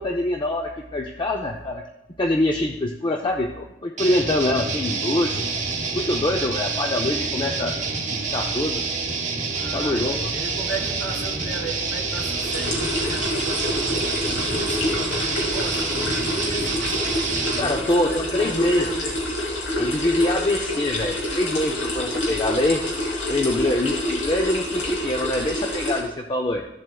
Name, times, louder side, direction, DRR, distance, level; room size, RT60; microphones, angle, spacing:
voice 1, 0.0-1.8 2.2-5.4 5.9-7.7 8.1-8.8 9.7-10.3 17.6-18.9 19.8-22.8 23.3-26.6, left 1 dB, 25° left, 2 dB, 0.5 m, -24 dB
sound 1, 4.0-17.7, right 4 dB, 40° right, 1.1 m, -27 dB
voice 2, 9.5-17.0 17.7-19.2, right 2 dB, 50° left, -3 dB, 3.1 m, -35 dB
sound 2, 12.1-26.0, left 1 dB, 85° left, 2.9 m, -27 dB
15.0 x 7.6 x 2.3 m, 0.96 s
head